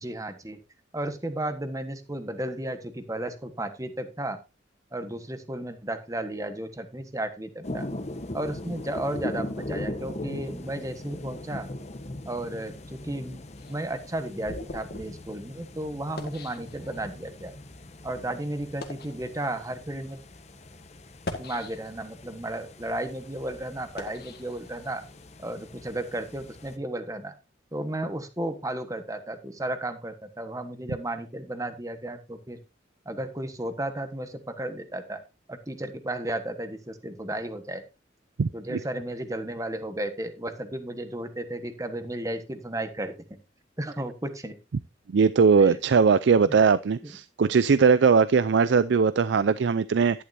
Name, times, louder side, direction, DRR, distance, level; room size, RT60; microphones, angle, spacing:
voice 1, 0.0-0.6 0.9-4.4 4.9-7.9 8.3-11.7 12.2-13.4 13.7-17.5 18.0-20.2 21.4-25.0 25.4-27.3 27.7-32.6 33.0-35.2 35.5-37.8 38.5-43.1 43.8-44.5 45.6-45.8 47.0-47.1, right 1 dB, 20° right, 1.3 m, -34 dB
sound 1, 7.6-26.8, left 1 dB, 40° left, 1.0 m, -40 dB
sound 2, 13.6-17.3 18.0-18.1 18.6-19.2 20.0-20.1 21.1-22.2 22.7-25.2, left 2 dB, 60° left, 1.7 m, -42 dB
voice 2, 38.4-38.8 45.1-50.2, right 5 dB, 75° right, 0.4 m, -20 dB
11.5 x 11.0 x 2.7 m
head